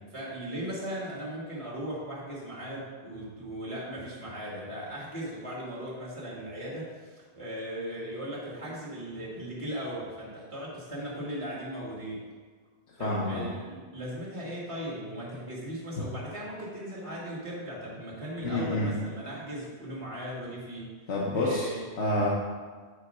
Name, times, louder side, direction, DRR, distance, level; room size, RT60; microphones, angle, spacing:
voice 1, 0.1-12.2 13.0-20.9 21.3-21.8, equal, 25° right, -6 dB, 1.9 m, -38 dB
voice 2, 13.0-13.5 16.0-16.1 18.4-18.9 21.1-21.7 22.0-22.3, left 1 dB, 75° left, -5 dB, 1.3 m, -28 dB
8.5 x 4.3 x 5.3 m, 1.5 s
omnidirectional pair, 1.2 m